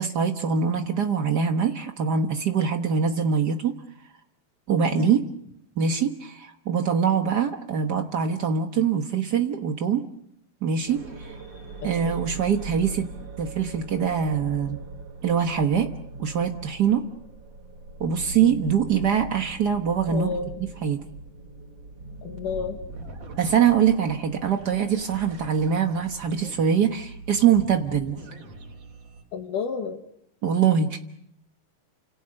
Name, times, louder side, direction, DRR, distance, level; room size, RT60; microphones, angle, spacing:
voice 1, 0.0-3.7 4.7-5.2 5.8-10.0 10.6-11.3 11.8-13.1 13.4-14.8 15.2-15.9 16.2-17.0 18.0-20.3 20.8-21.0 23.4-28.2 30.4-31.0, right 7 dB, 75° right, 5 dB, 0.9 m, -23 dB
sound 1, 10.9-29.2, right 3 dB, 50° right, 4.4 m, -41 dB
voice 2, 20.1-20.5 22.2-22.8 29.3-30.0, left 6 dB, 75° left, 5 dB, 3.0 m, -31 dB
29.5 x 27.0 x 6.5 m, 0.75 s
omnidirectional pair, 3.8 m